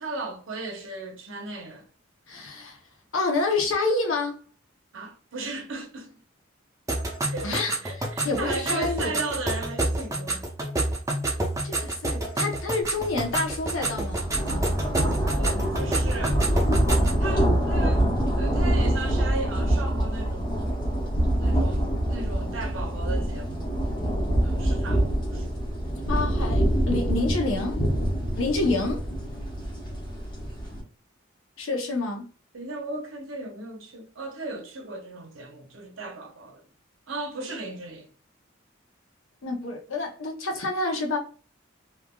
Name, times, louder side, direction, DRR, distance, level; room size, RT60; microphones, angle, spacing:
voice 1, 0.0-1.9 4.9-6.2 7.3-7.6 7.8-10.5 13.0-13.1 15.2-16.4 17.2-18.1 18.4-20.6 21.4-23.7 24.4-25.5 32.5-36.6 37.1-38.1, right 2 dB, 75° right, 0.8 m, -36 dB
voice 2, 2.3-2.8 3.1-4.4 7.4-7.8 8.2-9.2 11.6-14.4 26.1-27.8 28.4-29.0 31.6-32.3 39.4-41.2, left 3 dB, 75° left, 0.7 m, -28 dB
sound 1, 6.9-17.2, right 2 dB, 15° right, 0.5 m, -29 dB
sound 2, 13.0-13.2 13.5-30.8, right 1 dB, 25° left, 0.8 m, -25 dB
3.3 x 2.3 x 2.2 m
head